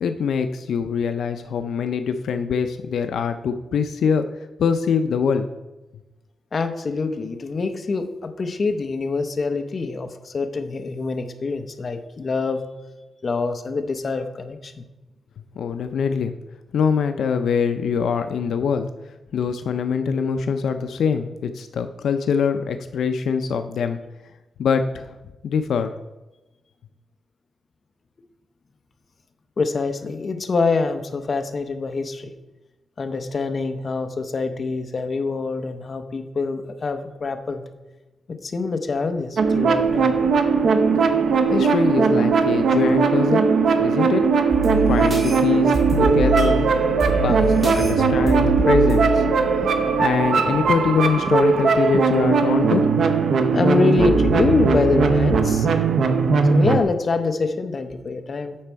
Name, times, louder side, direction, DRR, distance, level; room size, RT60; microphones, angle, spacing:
voice 1, 0.0-5.5 15.6-16.4 16.7-18.9 19.3-24.0 24.6-25.1 25.4-25.9 41.5-43.5 43.8-44.3 44.8-46.6 46.9-49.2 50.0-52.9, left 6 dB, 80° left, 8 dB, 0.4 m, -23 dB
voice 2, 6.5-12.6 13.2-14.8 29.6-32.3 33.0-37.6 38.3-40.2 53.5-55.7 56.5-58.6, left 4 dB, 35° left, 7 dB, 0.6 m, -25 dB
sound 1, 39.4-56.8, right 5 dB, 60° right, 0.6 m, -19 dB
sound 2, 44.5-50.1, right 2 dB, 35° right, 2.6 m, -26 dB
8.6 x 6.0 x 4.5 m, 1.1 s
wide cardioid pair, 180°, 0 cm